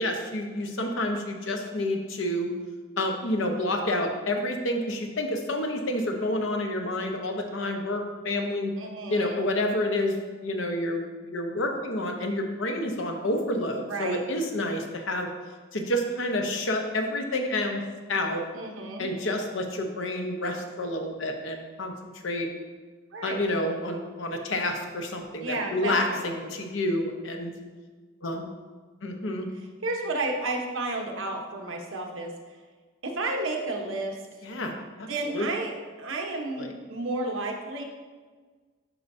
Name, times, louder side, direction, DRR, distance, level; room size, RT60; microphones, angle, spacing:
voice 1, 0.0-2.5 3.0-8.7 9.1-15.3 15.7-17.8 18.1-18.4 19.0-22.5 23.2-27.5 28.2-28.5 29.0-29.5 34.4-35.5 36.6-36.7, left 1 dB, 75° left, 3 dB, 0.9 m, -29 dB
voice 2, 8.8-9.4 13.8-14.2 18.5-19.1 23.1-23.5 25.4-26.5 29.8-32.3 33.0-34.2 35.1-37.8, right 2 dB, 80° right, 2 dB, 1.0 m, -32 dB
10.5 x 4.7 x 2.7 m, 1.4 s
head